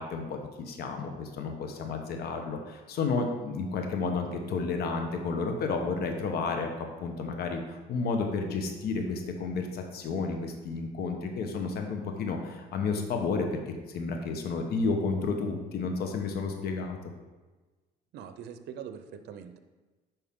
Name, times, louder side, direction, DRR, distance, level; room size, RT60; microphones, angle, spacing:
voice 1, 0.0-17.0, left 4 dB, 65° left, 4 dB, 1.2 m, -31 dB
voice 2, 18.1-19.6, right 8 dB, 80° right, 9 dB, 0.7 m, -43 dB
9.0 x 5.4 x 3.7 m, 1.2 s
cardioid pair, 110°, 17 cm